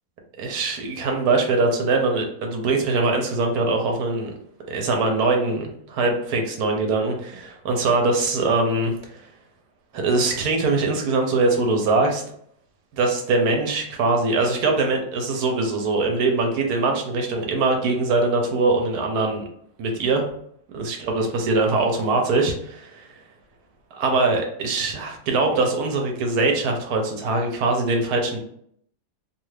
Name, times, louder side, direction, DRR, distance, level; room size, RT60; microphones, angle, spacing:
voice 1, 0.4-4.3 4.7-9.2 9.9-12.2 12.9-19.4 19.8-20.2 20.7-23.1 23.9-28.4, right 3 dB, 70° right, 2 dB, 1.1 m, -22 dB
2.8 x 2.4 x 3.1 m, 0.67 s
omnidirectional pair, 1.9 m